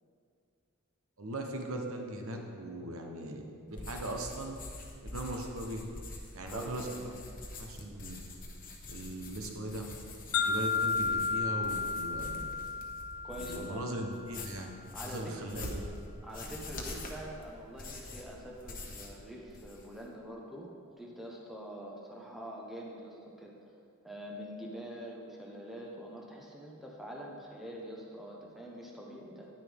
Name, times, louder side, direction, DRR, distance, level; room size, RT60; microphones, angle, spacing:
voice 1, 1.2-3.4 3.7-4.6 5.0-5.8 6.3-6.9 7.6-8.2 8.9-9.9 10.3-12.5 13.3-14.7 15.0-15.7, right 1 dB, 70° right, 2 dB, 1.0 m, -39 dB
sound 1, 3.7-13.8 14.1-19.2 19.5-20.0, left 2 dB, 40° left, 1.2 m, -45 dB
voice 2, 6.5-7.2 13.2-13.8 14.9-16.0 16.2-23.6 24.0-29.5, equal, ahead, -3 dB, 1.1 m, -45 dB
sound 2, 10.3-14.3, left 4 dB, 65° left, 1.0 m, -33 dB
10.0 x 9.7 x 3.6 m, 2.3 s
head